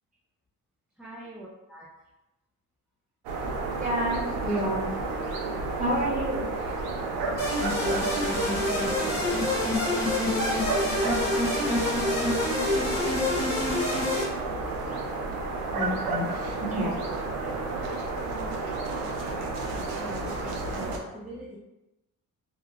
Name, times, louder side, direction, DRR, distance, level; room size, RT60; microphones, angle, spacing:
voice 1, 1.0-1.8 6.8-7.7 9.9-12.1 16.0-16.2 18.4-21.6, right 1 dB, 5° right, -9 dB, 0.4 m, -45 dB
sound 1, 3.2-21.0, right 3 dB, 90° right, 0.5 m, -31 dB
voice 2, 3.8-4.9 5.8-6.5 15.7-16.2 16.6-17.0 17.4-17.6, right 1 dB, 20° right, -6 dB, 0.9 m, -29 dB
sound 2, 7.4-14.2, left 2 dB, 75° left, 1.4 m, -27 dB
3.0 x 2.0 x 2.4 m, 0.98 s
cardioid pair, 135°, 35 cm